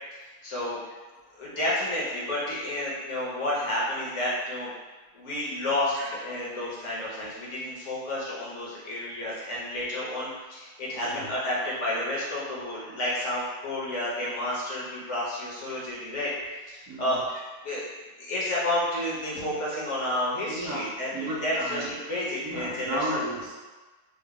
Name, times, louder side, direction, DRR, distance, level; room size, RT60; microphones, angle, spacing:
voice 1, 0.1-0.8 1.4-4.7 5.1-16.3 16.7-17.2 17.6-17.8 18.2-23.2, left 1 dB, 55° left, -6 dB, 1.2 m, -31 dB
voice 2, 20.4-20.9 21.1-21.8 22.4-23.5, right 1 dB, 80° right, -4 dB, 1.3 m, -33 dB
3.7 x 2.3 x 3.5 m, 1.3 s
omnidirectional pair, 1.6 m